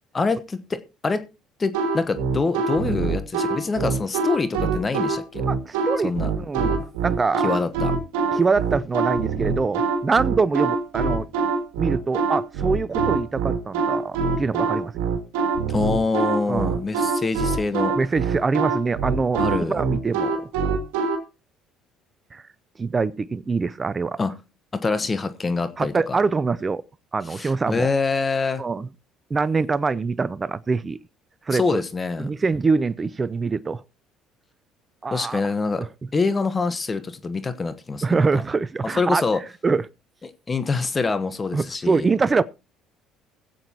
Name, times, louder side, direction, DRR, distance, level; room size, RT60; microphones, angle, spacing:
voice 1, 0.1-1.2 1.6-5.4 6.0-6.3 7.4-7.9 15.7-18.0 19.4-19.8 24.2-24.4 24.7-26.2 27.3-28.6 31.5-32.3 35.1-35.8 36.1-38.4 38.8-39.4 40.5-42.1, left 4 dB, 30° left, 1.0 m, -25 dB
sound 1, 1.7-21.2, right 4 dB, 85° right, 1.8 m, -24 dB
voice 2, 5.4-7.5 8.3-11.3 11.8-14.9 16.5-16.8 18.0-19.4 19.7-20.5 22.3-22.4 22.8-24.2 25.8-26.8 27.1-27.9 28.6-28.9 29.3-31.0 31.5-31.8 32.2-33.8 35.0-35.4 35.7-35.9 38.0-39.2 39.6-39.9 41.5-42.4, right 4 dB, 30° right, 0.5 m, -24 dB
22.0 x 7.8 x 2.8 m
supercardioid pair, 75°, 0 cm